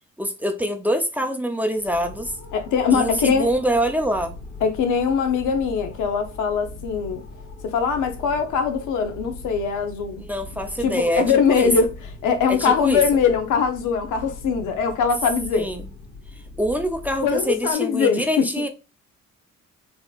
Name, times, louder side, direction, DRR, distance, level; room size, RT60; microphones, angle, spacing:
voice 1, 0.2-2.3 2.9-4.3 10.2-11.7 12.5-13.0 15.5-15.8 16.6-18.7, equal, 5° right, 0.5 m, -25 dB
sound 1, 1.7-17.7, left 2 dB, 30° left, 1.6 m, -40 dB
voice 2, 2.5-3.5 4.6-7.2 7.6-10.2 10.8-15.7 17.2-18.5, left 6 dB, 85° left, 0.8 m, -22 dB
4.1 x 2.9 x 2.4 m
cardioid pair, 90°, 30 cm